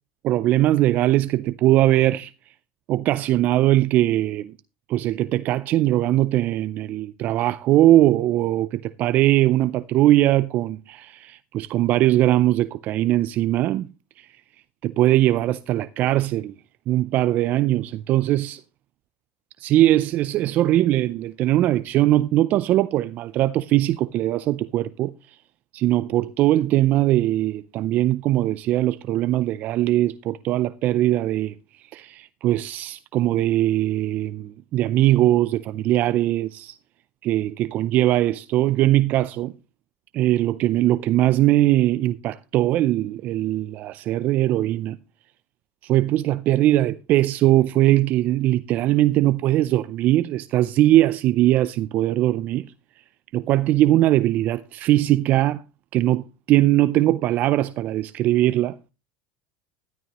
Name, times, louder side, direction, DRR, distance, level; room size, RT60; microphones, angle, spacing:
voice 1, 0.2-2.3 2.9-4.5 4.9-13.9 14.2-14.3 14.8-16.5 16.9-18.6 19.6-25.4 25.7-36.8 37.2-39.5 40.1-45.0 45.8-52.7 53.3-55.6 55.9-58.8, right 14 dB, 50° right, 0.5 m, -20 dB
12.5 x 12.5 x 3.0 m
supercardioid pair, 110°, 4 cm